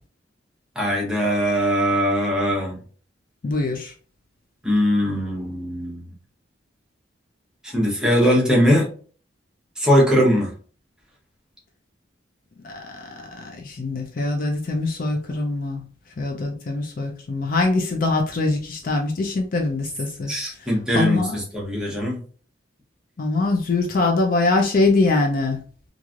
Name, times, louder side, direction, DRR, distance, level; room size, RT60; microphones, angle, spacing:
voice 1, 0.8-2.8 4.6-6.1 7.6-8.9 9.8-10.5 20.3-22.2, equal, 5° right, -3 dB, 0.8 m, -20 dB
voice 2, 3.4-3.9 12.6-13.2 13.4-15.8 16.2-20.3 20.9-21.4 23.2-25.6, left 3 dB, 45° left, 2 dB, 0.4 m, -23 dB
3.1 x 2.5 x 2.4 m, 0.42 s
head